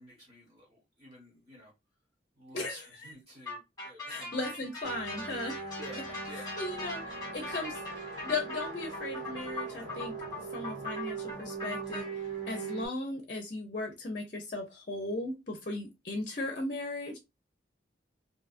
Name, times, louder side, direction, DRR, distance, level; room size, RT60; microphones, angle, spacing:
voice 1, 0.0-1.7 2.4-4.6 5.7-6.6, equal, 30° right, 1.2 m, -51 dB
voice 2, 2.5-3.1 4.1-5.5 6.3-10.1 10.5-12.0 12.5-17.2, left 2 dB, 45° left, 0.5 m, -37 dB
sound 1, 3.5-12.0, left 2 dB, 20° left, 1.0 m, -41 dB
sound 2, 4.8-12.9, right 4 dB, 80° right, 1.6 m, -40 dB
2.7 x 2.3 x 2.4 m
head